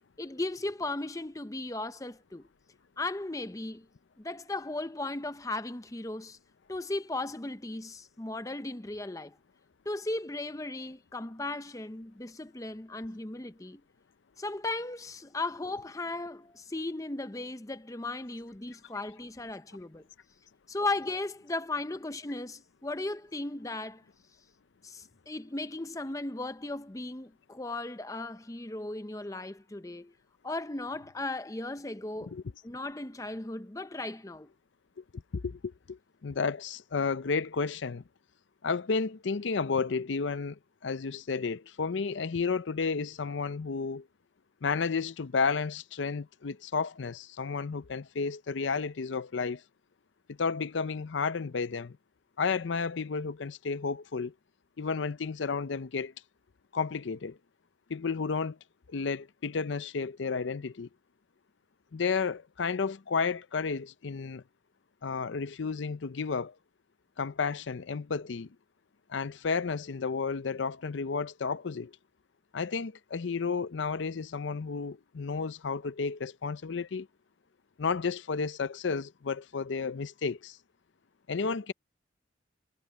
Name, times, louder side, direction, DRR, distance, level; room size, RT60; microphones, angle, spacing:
voice 1, 0.2-2.5 3.0-3.9 4.2-6.4 6.7-9.4 9.9-13.8 14.4-20.0 20.7-24.0 24.8-30.1 30.4-32.3 32.6-34.5, left 2 dB, 15° left, 0.6 m, -36 dB
voice 2, 35.3-38.0 38.6-44.0 44.6-49.6 50.4-52.0 52.4-54.3 54.8-56.1 56.7-57.4 57.9-58.6 58.9-60.9 61.9-64.4 65.0-66.5 67.2-68.5 69.1-71.9 72.5-77.1 77.8-80.6 81.3-81.7, left 5 dB, 75° left, 0.6 m, -32 dB
head